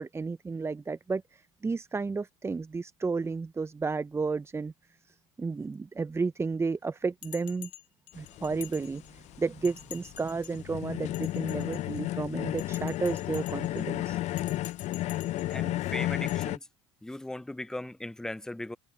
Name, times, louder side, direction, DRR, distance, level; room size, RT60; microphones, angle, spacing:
voice 1, 0.0-4.7 5.1-7.7 8.1-14.2, right 4 dB, 15° right, 0.8 m, -32 dB
Bell, 7.2-9.3 9.6-10.6 11.1-12.1 12.6-13.8 14.3-15.6 16.3-16.4, left 15 dB, 75° left, 2.8 m, -48 dB
sound 1, 8.1-16.6, left 15 dB, 45° left, 0.7 m, -33 dB
voice 2, 15.5-16.7 17.0-18.8, left 1 dB, 5° left, 0.5 m, -38 dB
figure-of-eight pair, 70°, 16 cm